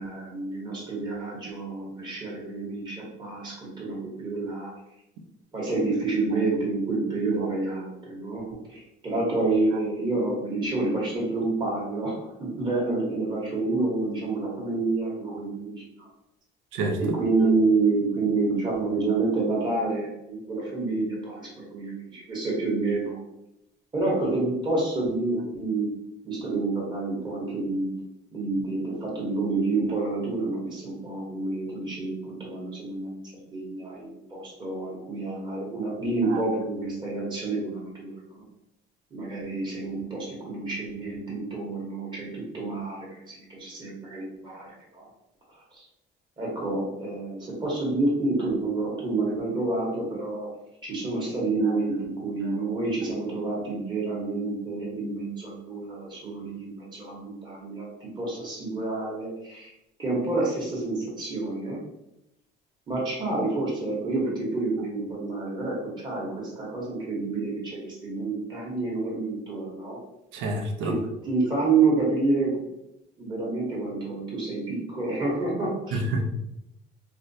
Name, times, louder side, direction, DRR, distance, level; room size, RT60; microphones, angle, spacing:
voice 1, 0.0-4.7 5.5-16.1 17.0-23.2 23.9-25.9 26.2-27.9 28.3-38.4 39.1-45.1 45.7-45.8 46.4-50.5 50.8-59.7 60.0-61.8 62.9-70.0 70.8-72.6 73.2-76.0, right 3 dB, 25° right, -4 dB, 1.0 m, -28 dB
voice 2, 70.3-70.9 75.9-76.2, right 2 dB, 90° right, 4 dB, 0.6 m, -28 dB
4.2 x 2.0 x 2.6 m, 0.85 s
cardioid pair, 165°, 19 cm